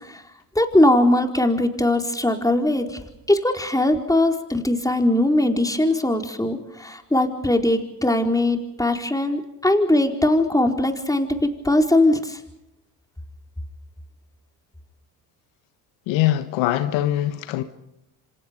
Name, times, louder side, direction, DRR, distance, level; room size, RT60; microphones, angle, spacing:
voice 1, 0.5-3.0 3.3-11.3 11.6-12.4, left 1 dB, 5° left, 4.4 m, -20 dB
voice 2, 16.1-17.6, left 13 dB, 70° left, 1.5 m, -22 dB
27.5 x 26.5 x 5.3 m
hypercardioid pair, 65°, 47 cm